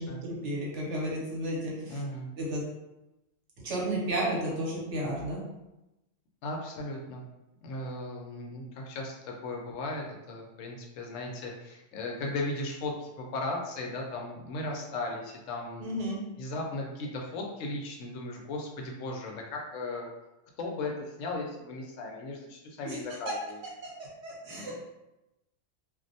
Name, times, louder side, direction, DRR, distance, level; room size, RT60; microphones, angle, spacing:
voice 1, 0.0-2.0 2.3-2.6 3.6-5.4 15.8-16.2 22.8-23.0 24.2-24.8, right 1 dB, 70° right, -4 dB, 1.0 m, -32 dB
voice 2, 1.8-2.3 6.4-7.2 7.6-15.9 16.4-20.1 20.6-23.6 24.5-24.8, left 2 dB, 85° left, 0 dB, 0.9 m, -37 dB
2.4 x 2.0 x 2.6 m, 0.94 s
omnidirectional pair, 1.3 m